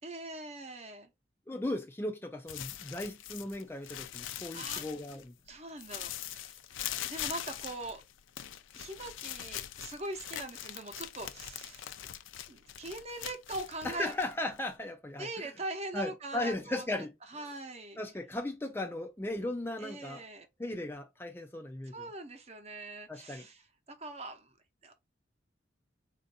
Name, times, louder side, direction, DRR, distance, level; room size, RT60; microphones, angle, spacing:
voice 1, 0.0-1.1 4.5-4.9 5.5-6.6 7.1-8.0 8.7-11.9 12.5-14.1 15.2-16.8 17.3-18.0 19.8-20.5 21.9-24.5 24.8-24.9, right 2 dB, 35° right, 0.8 m, -42 dB
voice 2, 1.5-5.3 13.8-15.5 15.9-17.1 17.4-17.5 18.0-20.2 20.6-22.1 23.1-23.5, left 1 dB, 10° left, 0.3 m, -37 dB
sound 1, 2.5-5.5 5.8-14.8, left 12 dB, 80° left, 0.4 m, -42 dB
4.3 x 2.6 x 4.0 m
head